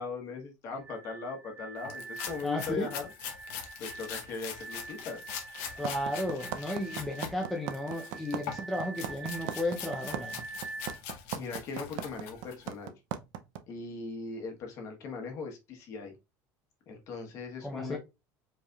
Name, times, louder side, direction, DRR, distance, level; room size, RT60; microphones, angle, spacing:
voice 1, 0.0-3.0 3.8-5.2 11.3-12.9 13.7-16.1 16.9-18.0, left 4 dB, 40° left, 1.2 m, -39 dB
glass pad A, 0.8-11.0, right 3 dB, 30° right, 0.9 m, -45 dB
sound 1, 1.8-7.3 7.7-12.7, left 7 dB, 85° left, 1.1 m, -43 dB
voice 2, 2.4-2.9 5.8-10.4 17.6-18.0, left 1 dB, ahead, 0.6 m, -34 dB
sound 2, 5.8-13.6, right 10 dB, 65° right, 0.6 m, -36 dB
5.1 x 3.3 x 2.4 m
cardioid pair, 180°, 8 cm